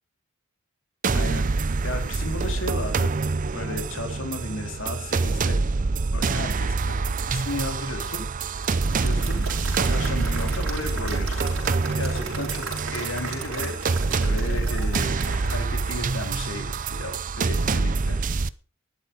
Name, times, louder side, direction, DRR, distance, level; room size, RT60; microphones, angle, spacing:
sound 1, 1.0-18.5, right 3 dB, 40° right, 0.5 m, -26 dB
voice 1, 1.1-1.5 1.8-3.1 3.5-5.6 6.1-7.0 7.3-8.3 9.0-11.5 11.9-12.7 12.9-13.9 14.2-18.2, left 1 dB, 65° left, 5 dB, 3.4 m, -34 dB
Applause / Crowd, 8.4-16.6, right 4 dB, 65° right, 4.9 m, -37 dB
12.5 x 11.5 x 5.2 m, 0.36 s
head